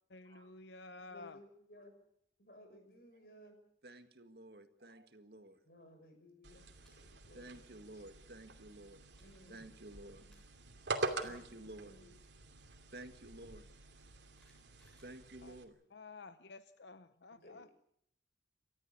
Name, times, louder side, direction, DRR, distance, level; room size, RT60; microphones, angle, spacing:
voice 1, 0.1-1.4 15.4-15.6 15.9-17.7, left 3 dB, 80° left, 12 dB, 0.8 m, -52 dB
voice 2, 1.0-1.9 2.4-3.6 5.6-7.6 9.2-9.9 10.3-10.4 11.1-12.1 17.3-17.7, left 1 dB, 55° left, 6 dB, 6.1 m, -59 dB
voice 3, 3.8-5.6 7.3-9.1 9.5-10.3 11.2-12.0 12.9-13.7 15.0-15.8, right 1 dB, 65° right, 8 dB, 1.9 m, -52 dB
sound 1, 6.4-15.6, right 2 dB, 80° right, 2.6 m, -45 dB
sound 2, 6.7-6.9 7.3-7.6 8.8-8.9 9.1-9.4 9.9-10.4 10.7-10.8 11.0-11.4 12.7-12.8 13.8-15.7, equal, 5° left, 7.1 m, -70 dB
29.5 x 14.0 x 8.4 m, 0.70 s
head